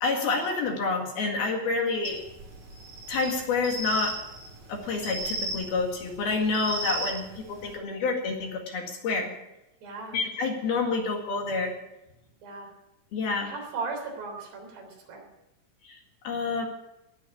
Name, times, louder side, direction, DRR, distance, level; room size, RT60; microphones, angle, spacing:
voice 1, 0.0-2.2 3.1-4.2 4.7-9.3 10.1-11.7 13.1-13.5 15.8-16.7, left 4 dB, 60° left, 1 dB, 3.7 m, -28 dB
sound 1, 2.0-7.7, right 2 dB, 50° right, 4.1 m, -36 dB
voice 2, 9.8-10.2 12.4-12.7 13.5-15.3, right 4 dB, 65° right, 1 dB, 5.4 m, -37 dB
19.5 x 7.7 x 8.5 m, 0.94 s
omnidirectional pair, 5.2 m